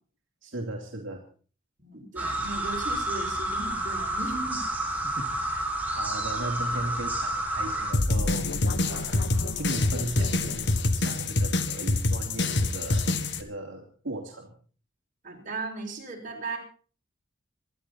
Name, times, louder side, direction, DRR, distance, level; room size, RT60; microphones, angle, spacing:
voice 1, 0.4-1.2 5.0-13.1 13.4-14.5, right 1 dB, 75° right, 0 dB, 3.0 m, -37 dB
voice 2, 1.8-4.6 15.2-16.6, right 3 dB, 45° right, 0 dB, 6.0 m, -36 dB
sound 1, 2.2-7.9, right 1 dB, 10° right, 4.0 m, -30 dB
sound 2, 7.9-13.4, left 2 dB, 65° left, 1.6 m, -26 dB
24.0 x 12.5 x 4.3 m, 0.41 s
head